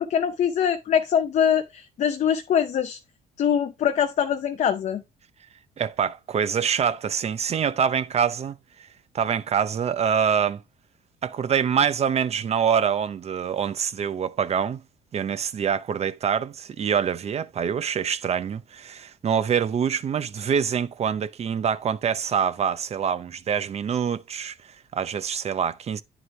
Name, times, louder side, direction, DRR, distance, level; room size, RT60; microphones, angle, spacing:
voice 1, 0.0-3.0 3.4-5.0, left 8 dB, 45° left, 0.7 m, -23 dB
voice 2, 5.8-8.6 9.1-10.6 11.2-14.8 15.1-26.0, right 7 dB, 40° right, 0.6 m, -25 dB
9.5 x 4.8 x 3.3 m
cardioid pair, 110°, 17 cm